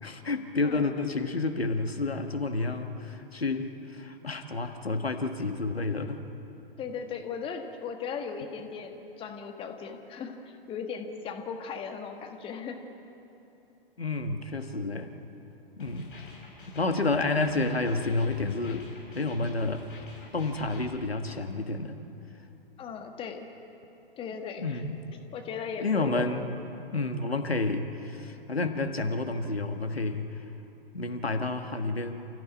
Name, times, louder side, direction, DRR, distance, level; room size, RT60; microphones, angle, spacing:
voice 1, 0.0-6.2 14.0-15.1 15.8-16.1 16.7-18.9 19.1-19.9 20.3-22.0 24.6-25.0 25.8-26.4 26.9-30.3 30.9-32.3, left 3 dB, 80° left, 6 dB, 1.8 m, -30 dB
voice 2, 6.8-12.8 22.8-23.5 24.2-24.9 25.3-26.3, left 6 dB, 15° left, 5 dB, 1.6 m, -37 dB
sound 1, 15.8-20.8, left 3 dB, 60° left, 6.9 m, -48 dB
29.5 x 15.5 x 8.5 m, 3.0 s
figure-of-eight pair, 115°, 30 cm